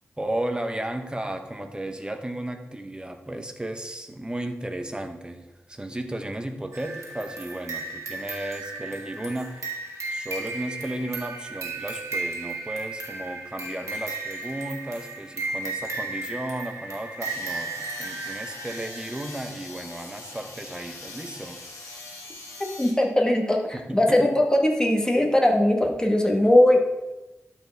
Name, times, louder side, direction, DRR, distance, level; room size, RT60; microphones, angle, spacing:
voice 1, 0.2-9.7 10.1-21.6 23.7-24.3, right 1 dB, 15° right, 6 dB, 1.0 m, -34 dB
sound 1, 6.7-19.3, right 3 dB, 70° right, 1.5 m, -35 dB
sound 2, 17.2-22.9, left 2 dB, 80° left, 1.6 m, -42 dB
voice 2, 22.8-26.8, left 1 dB, 15° left, 1 dB, 1.4 m, -20 dB
12.0 x 4.6 x 3.5 m, 1.0 s
cardioid pair, 55°, 5 cm